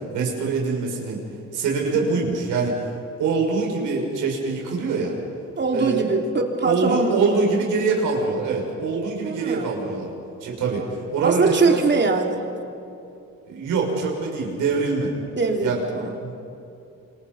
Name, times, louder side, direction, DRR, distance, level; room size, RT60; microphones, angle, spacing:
voice 1, 0.1-1.2 1.5-2.7 3.2-5.1 5.7-6.0 6.6-10.1 10.4-10.8 11.1-11.8 13.4-15.1 15.6-15.8 16.2-16.3, right 4 dB, 85° right, -1 dB, 6.3 m, -24 dB
voice 2, 5.6-7.2 9.2-9.7 11.2-12.4 15.4-16.2, right 4 dB, 35° right, 2 dB, 3.3 m, -22 dB
27.5 x 26.5 x 5.6 m, 2.7 s
cardioid pair, 90°, 30 cm